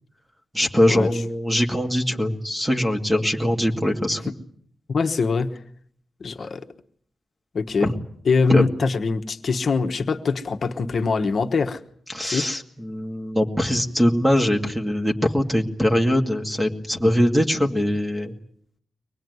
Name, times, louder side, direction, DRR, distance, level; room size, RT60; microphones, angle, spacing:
voice 1, 0.5-4.2 7.8-7.9 8.5-8.6 12.1-18.4, equal, 5° right, 3 dB, 2.2 m, -22 dB
voice 2, 4.9-5.5 6.2-6.6 7.5-7.9 8.2-11.8 12.2-12.5, left 4 dB, 45° left, 5 dB, 1.2 m, -23 dB
24.0 x 19.5 x 9.5 m, 0.65 s
wide cardioid pair, 175°, 0 cm